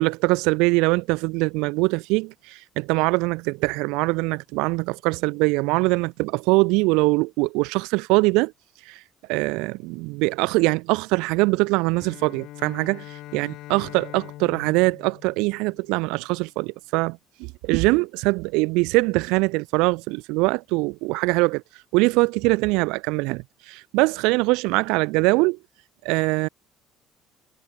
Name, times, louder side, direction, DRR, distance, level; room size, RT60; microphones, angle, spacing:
voice 1, 0.0-8.5 8.9-9.0 9.3-13.0 13.3-21.6 21.9-25.6 26.0-26.5, right 26 dB, 80° right, 0.3 m, -22 dB
Bowed string instrument, 11.8-16.3, left 16 dB, 70° left, 1.5 m, -42 dB
supercardioid pair, 75°, 0 cm